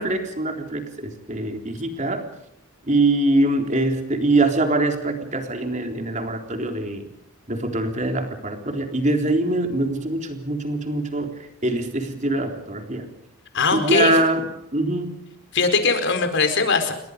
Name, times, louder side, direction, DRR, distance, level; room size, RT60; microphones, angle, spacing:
voice 1, 0.0-2.3 2.8-7.0 7.5-11.3 11.6-13.1 13.7-14.5 14.7-15.2, right 2 dB, 35° right, 4 dB, 3.8 m, -23 dB
voice 2, 13.5-14.2 15.5-16.9, left 4 dB, 55° left, 8 dB, 4.5 m, -20 dB
29.5 x 23.5 x 5.3 m, 0.81 s
head